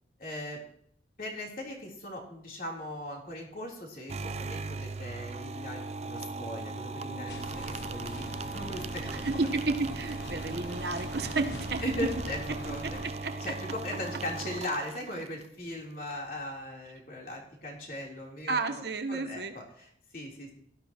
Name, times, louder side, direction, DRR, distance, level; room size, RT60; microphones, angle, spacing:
voice 1, 0.2-0.6 1.2-9.2 11.8-12.4 12.6-13.1 13.4-20.5, left 1 dB, 50° left, -1 dB, 3.6 m, -39 dB
sound 1, 4.1-15.5, right 3 dB, 35° right, 0.5 m, -38 dB
sound 2, 7.3-13.1, left 1 dB, 70° left, 1.3 m, -43 dB
voice 2, 9.1-11.8 12.5-12.6 12.8-13.5 18.5-19.5, right 3 dB, 65° right, 6 dB, 1.1 m, -32 dB
17.0 x 13.0 x 3.0 m, 0.68 s
head